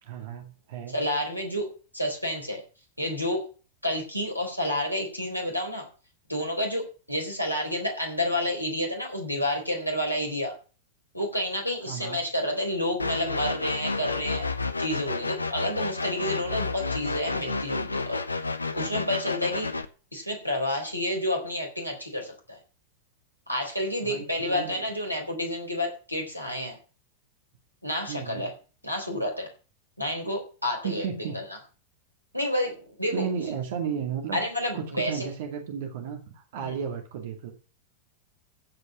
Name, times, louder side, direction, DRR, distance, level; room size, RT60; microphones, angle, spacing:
voice 1, 0.0-1.0 11.9-12.2 24.0-24.8 28.1-28.5 30.8-31.4 33.1-34.4 34.7-37.5, right 7 dB, 55° right, 4 dB, 2.2 m, -34 dB
voice 2, 0.9-1.7 1.9-2.6 3.0-3.4 3.8-5.9 6.3-10.5 11.1-14.5 14.8-19.7 20.1-22.6 23.5-26.8 27.8-28.5 28.8-29.5 30.0-31.1 31.3-31.4 32.3-33.3 34.3-35.3 36.6-36.8, left 1 dB, 90° right, 2 dB, 4.3 m, -29 dB
sound 1, 13.0-19.8, left 3 dB, 80° left, 0.8 m, -31 dB
15.5 x 5.5 x 5.9 m, 0.36 s
figure-of-eight pair, 90°, 0 cm